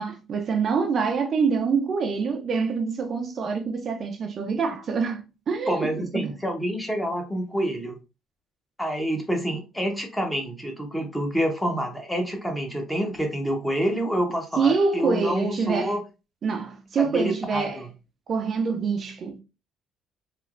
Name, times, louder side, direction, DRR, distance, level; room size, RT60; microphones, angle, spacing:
voice 1, 0.0-6.4 14.6-16.0 16.4-17.9 18.3-19.4, right 5 dB, 40° right, 0.4 m, -26 dB
voice 2, 5.7-8.0 8.8-16.0 17.0-17.9, equal, 5° left, 0.7 m, -27 dB
3.2 x 2.8 x 2.4 m
cardioid pair, 150°, 0 cm